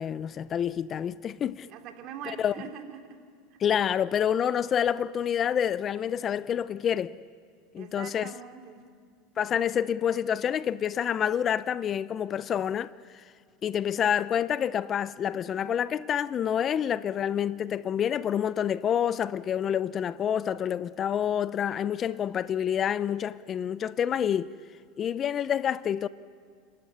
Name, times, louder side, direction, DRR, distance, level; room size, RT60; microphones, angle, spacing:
voice 1, 0.0-1.7 2.4-2.5 3.6-7.2 7.7-8.3 9.4-13.2 13.6-24.5 25.0-26.1, left 9 dB, 35° left, 0.5 m, -28 dB
voice 2, 1.6-3.2 3.5-3.6 7.8-8.9, right 8 dB, 55° right, 3.0 m, -43 dB
30.0 x 13.5 x 10.0 m
supercardioid pair, 105°, 0 cm